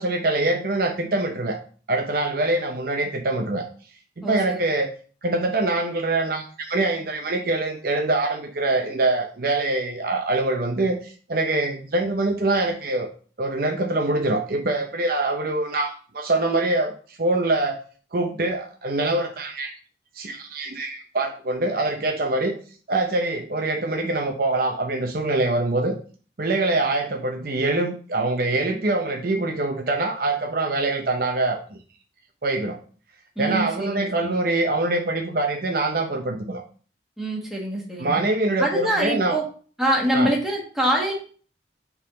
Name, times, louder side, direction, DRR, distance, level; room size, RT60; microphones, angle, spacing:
voice 1, 0.0-1.6 1.9-3.6 4.3-4.9 5.2-13.1 13.4-17.8 18.1-19.7 20.1-22.5 22.9-26.0 26.4-31.6 32.4-32.8 33.4-36.6 38.0-39.4 40.1-40.3, right 2 dB, 50° right, 3 dB, 0.7 m, -24 dB
voice 2, 4.2-4.7 33.3-34.4 37.2-38.2 38.6-39.4 39.8-41.1, right 1 dB, ahead, -3 dB, 1.6 m, -25 dB
7.1 x 3.7 x 3.8 m, 0.41 s
head